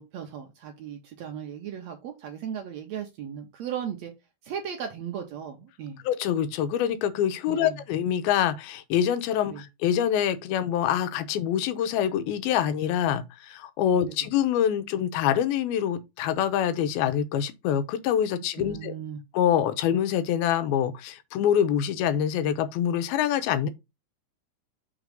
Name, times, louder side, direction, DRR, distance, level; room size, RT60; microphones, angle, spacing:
voice 1, 0.0-4.1 4.4-6.0 7.5-7.8 9.4-9.6 13.9-14.1 18.6-19.2, right 8 dB, 75° right, 1.6 m, -36 dB
voice 2, 6.1-18.9 19.3-23.7, left 9 dB, 90° left, 2.7 m, -25 dB
6.2 x 3.7 x 5.1 m
omnidirectional pair, 4.2 m